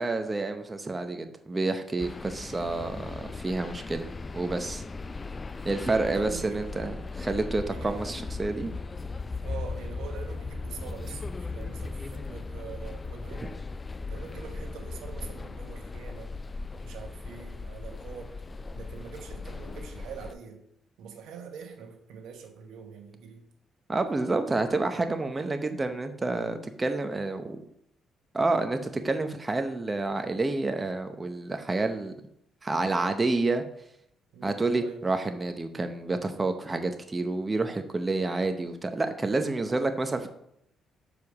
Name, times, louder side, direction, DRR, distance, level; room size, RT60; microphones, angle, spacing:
voice 1, 0.0-4.1 4.3-4.8 5.6-8.7 23.9-27.6 28.3-32.1 32.6-33.6 34.4-40.3, right 3 dB, 25° right, 7 dB, 0.7 m, -29 dB
sound 1, 2.0-20.3, left 3 dB, 30° left, 0.3 m, -38 dB
voice 2, 6.0-6.7 7.7-8.1 9.4-13.6 14.1-16.3 16.8-18.4 18.7-20.6 21.0-23.4 34.3-35.0, right 6 dB, 85° right, 6 dB, 1.0 m, -44 dB
6.9 x 4.8 x 4.8 m, 0.75 s
cardioid pair, 90°, 0 cm